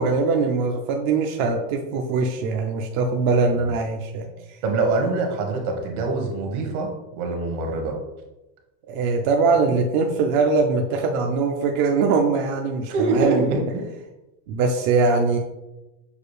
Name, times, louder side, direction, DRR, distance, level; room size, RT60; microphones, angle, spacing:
voice 1, 0.0-4.3 8.9-13.5 14.5-15.4, right 4 dB, 45° right, 2 dB, 0.4 m, -22 dB
voice 2, 4.6-6.9 7.2-8.0 12.8-13.6, right 3 dB, 60° right, 3 dB, 1.2 m, -24 dB
6.5 x 2.4 x 3.1 m, 1.0 s
supercardioid pair, 145°, 49 cm